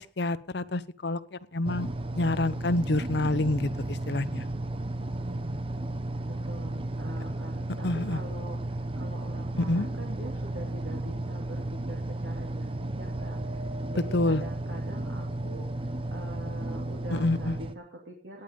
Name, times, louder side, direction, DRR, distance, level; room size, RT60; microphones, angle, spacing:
voice 1, 0.0-1.9 2.1-4.4 7.8-8.2 9.7-9.9 14.1-14.4 17.1-17.6, left 2 dB, 65° left, 12 dB, 0.9 m, -28 dB
sound 1, 1.6-17.7, right 1 dB, 30° right, 0.9 m, -34 dB
voice 2, 5.0-5.7 6.3-18.4, right 1 dB, 85° right, 0 dB, 2.5 m, -44 dB
17.5 x 9.0 x 5.2 m, 0.41 s
head